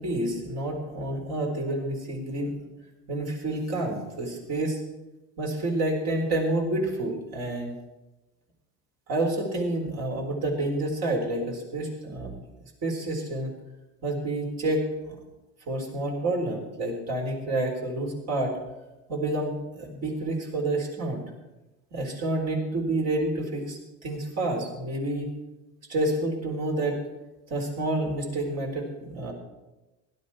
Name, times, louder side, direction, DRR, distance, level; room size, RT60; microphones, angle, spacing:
voice 1, 0.0-2.5 3.1-4.8 5.4-7.8 9.1-12.3 12.8-13.5 14.0-15.2 15.7-18.6 19.1-21.2 21.9-25.3 25.9-27.0 27.5-29.3, right 2 dB, 55° right, 1 dB, 4.4 m, -29 dB
16.5 x 12.0 x 4.4 m, 1.0 s
supercardioid pair, 105°, 32 cm